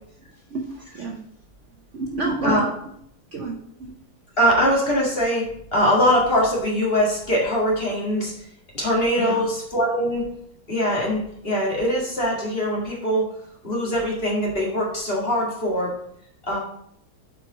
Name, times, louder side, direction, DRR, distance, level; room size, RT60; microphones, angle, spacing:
voice 1, 0.5-1.2 1.9-2.9 3.3-3.9 9.2-9.5, right 3 dB, 60° right, 1 dB, 0.7 m, -29 dB
voice 2, 4.4-8.3 8.7-10.3 10.7-13.3 13.6-15.9 16.4-16.6, equal, 30° left, -4 dB, 1.9 m, -22 dB
8.3 x 4.6 x 3.8 m, 0.71 s
omnidirectional pair, 2.3 m